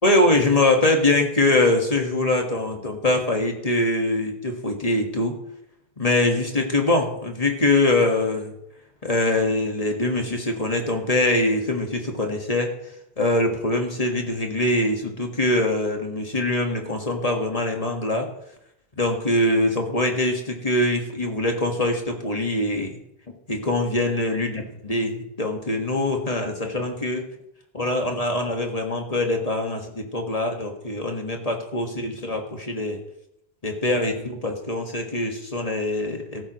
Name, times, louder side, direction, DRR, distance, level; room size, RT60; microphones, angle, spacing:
voice 1, 0.0-5.4 6.0-8.5 9.0-12.7 13.2-18.3 19.0-23.0 23.5-27.3 27.7-33.0 33.6-36.4, left 2 dB, 35° left, 2 dB, 1.7 m, -23 dB
14.5 x 13.0 x 3.1 m, 0.80 s
omnidirectional pair, 1.1 m